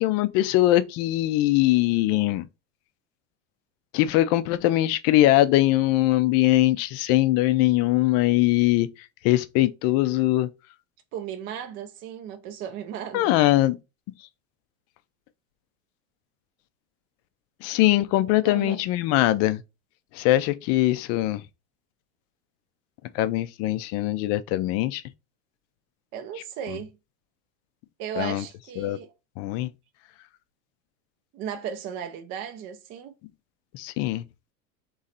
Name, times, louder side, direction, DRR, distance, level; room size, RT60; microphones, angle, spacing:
voice 1, 0.0-2.5 3.9-8.9 9.2-10.5 13.1-13.7 17.6-19.6 20.1-21.4 23.1-25.0 28.2-28.4 28.8-29.0 29.4-29.7 33.7-34.2, left 16 dB, 40° left, 0.4 m, -21 dB
voice 2, 11.1-13.3 18.4-18.8 26.1-27.0 28.0-29.1 31.3-33.1, right 9 dB, 30° right, 0.4 m, -35 dB
3.8 x 3.1 x 4.1 m
supercardioid pair, 155°, 40 cm